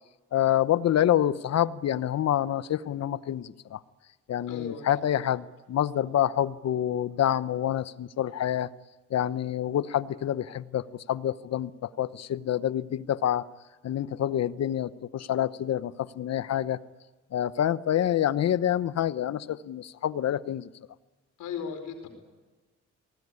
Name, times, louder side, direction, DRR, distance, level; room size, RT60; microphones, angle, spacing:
voice 1, 0.3-3.8 4.3-8.7 9.1-13.5 13.8-16.8 17.3-20.7, left 11 dB, 60° left, 16 dB, 0.9 m, -27 dB
voice 2, 4.5-4.8 21.4-22.1, left 6 dB, 80° left, 6 dB, 4.8 m, -36 dB
24.0 x 19.0 x 9.7 m, 1.2 s
cardioid pair, 90°, 30 cm